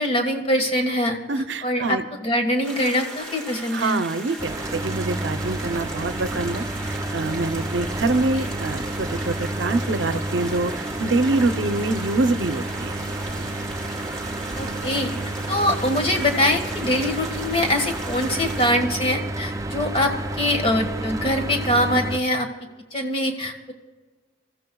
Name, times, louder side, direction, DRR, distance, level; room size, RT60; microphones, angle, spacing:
voice 1, 0.0-1.2 1.6-4.0 8.3-8.4 14.5-15.1 15.5-22.5 22.9-23.5, left 1 dB, 30° left, 4 dB, 1.5 m, -23 dB
voice 2, 1.3-2.0 3.7-12.9 13.4-13.5, right 2 dB, 90° right, 11 dB, 0.7 m, -25 dB
sound 1, 2.6-18.7, right 1 dB, 5° left, 2.6 m, -37 dB
Mechanical fan, 4.4-22.2, right 2 dB, 20° right, 0.5 m, -30 dB
27.0 x 14.5 x 2.3 m, 1.4 s
head